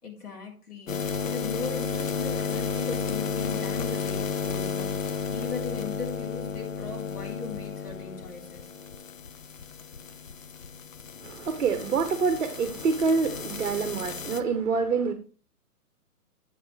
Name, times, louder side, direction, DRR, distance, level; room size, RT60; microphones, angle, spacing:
voice 1, 0.0-8.7, left 4 dB, 75° left, 3.3 m, -38 dB
sound 1, 0.9-14.4, left 7 dB, 55° left, 0.7 m, -33 dB
voice 2, 11.2-15.1, right 5 dB, 55° right, 1.0 m, -26 dB
8.1 x 7.1 x 3.2 m
hypercardioid pair, 175°, 46 cm